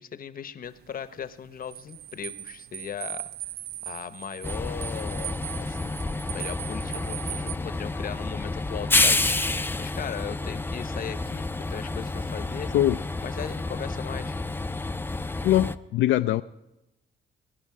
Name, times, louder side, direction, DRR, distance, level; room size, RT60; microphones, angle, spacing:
voice 1, 0.0-3.3 3.8-12.7 13.2-14.4, left 8 dB, 45° left, 13 dB, 0.8 m, -38 dB
sound 1, 0.6-7.6, right 13 dB, 55° right, 0.4 m, -39 dB
Train, 4.4-15.8, left 2 dB, 10° left, 0.5 m, -29 dB
voice 2, 15.4-16.4, left 13 dB, 80° left, 8 dB, 0.4 m, -22 dB
21.0 x 10.0 x 4.8 m, 0.94 s
cardioid pair, 90°, 20 cm